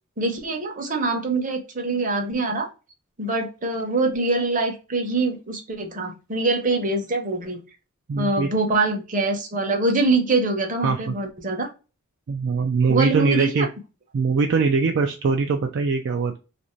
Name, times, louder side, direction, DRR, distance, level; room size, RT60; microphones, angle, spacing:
voice 1, 0.2-2.7 3.2-7.6 8.2-11.7 12.9-13.7, right 3 dB, 35° right, 3 dB, 0.7 m, -24 dB
voice 2, 8.1-8.5 10.8-11.2 12.3-13.7 14.1-16.4, right 4 dB, 55° right, 3 dB, 0.3 m, -22 dB
2.5 x 2.5 x 3.0 m, 0.31 s
head